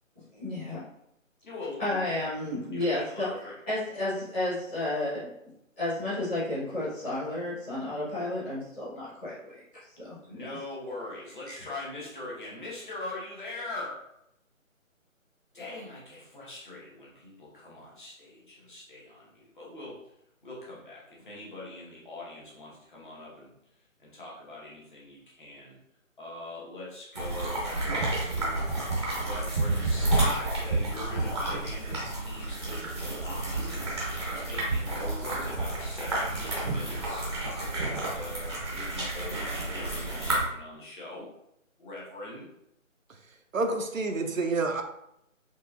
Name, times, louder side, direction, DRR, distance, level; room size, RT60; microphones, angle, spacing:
voice 1, 0.1-0.8 1.8-3.3 3.7-5.2 5.8-9.5 9.9-10.5 11.5-11.6, left 1 dB, 10° left, -14 dB, 1.1 m, -32 dB
voice 2, 1.4-2.2 2.7-3.5 10.3-14.0 15.5-20.0 20.4-23.5 24.0-25.8 26.2-28.6 29.1-33.9 34.4-37.2 37.7-41.3 41.8-42.5, left 2 dB, 35° left, -5 dB, 1.4 m, -42 dB
sound 1, 27.1-40.4, right 2 dB, 20° right, 0.8 m, -30 dB
voice 3, 43.5-44.8, right 3 dB, 75° right, 4 dB, 0.7 m, -28 dB
4.4 x 3.1 x 2.6 m, 0.76 s
figure-of-eight pair, 160°, 40 cm